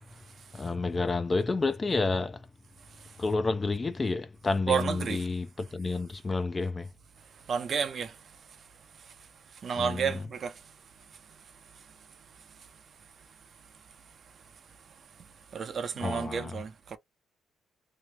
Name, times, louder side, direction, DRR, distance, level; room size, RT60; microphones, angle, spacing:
voice 1, 0.5-2.5 3.2-6.9 9.8-10.1 16.0-16.6, left 3 dB, 30° left, 0.5 m, -30 dB
voice 2, 4.7-5.3 7.4-8.4 8.9-9.1 9.5-10.7 11.3-11.4 11.7-11.9 12.3-12.7 15.2-17.0, right 6 dB, 50° right, 0.5 m, -33 dB
2.9 x 2.0 x 3.1 m
cardioid pair, 90°, 0 cm